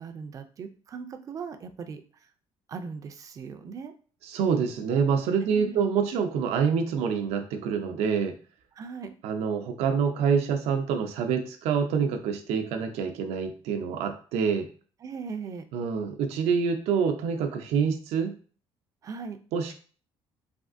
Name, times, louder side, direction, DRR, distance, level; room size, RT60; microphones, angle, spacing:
voice 1, 0.0-2.3 2.7-3.9 5.5-5.8 8.8-9.1 15.0-15.6 19.0-19.4, right 5 dB, 35° right, 8 dB, 0.3 m, -39 dB
voice 2, 4.3-8.4 9.2-14.7 15.7-18.3 19.5-19.7, right 6 dB, 85° right, 6 dB, 0.5 m, -26 dB
3.4 x 2.4 x 2.5 m, 0.40 s
cardioid pair, 150°, 10 cm